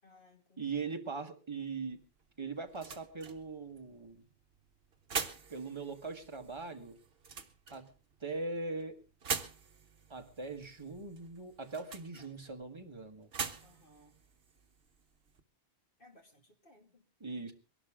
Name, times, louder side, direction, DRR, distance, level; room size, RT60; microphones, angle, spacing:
voice 1, 0.0-0.9 13.6-14.2 16.0-17.1, left 2 dB, 50° left, 3 dB, 2.8 m, -61 dB
voice 2, 0.6-2.0 2.4-4.2 5.5-7.0 7.7-7.9 8.2-9.0 10.1-13.3 17.2-17.5, right 4 dB, 25° right, 4 dB, 1.6 m, -40 dB
sound 1, 1.9-15.4, right 5 dB, 60° right, 1.4 m, -45 dB
23.0 x 12.0 x 3.7 m, 0.31 s
omnidirectional pair, 1.2 m